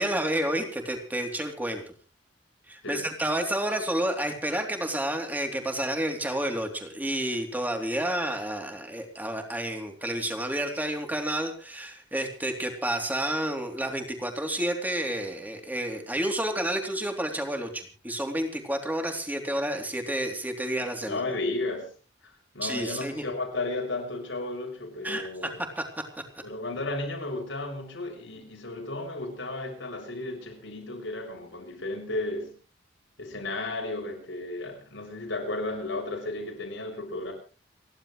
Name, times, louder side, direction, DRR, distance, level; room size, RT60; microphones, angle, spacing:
voice 1, 0.0-1.8 2.7-21.2 22.6-23.2 25.0-25.5 25.8-25.9, right 1 dB, 10° right, 3.3 m, -30 dB
voice 2, 2.8-3.2 21.1-21.9 22.2-25.6 26.4-32.5 33.2-37.3, left 2 dB, 85° left, 6.7 m, -34 dB
29.5 x 12.0 x 3.3 m
head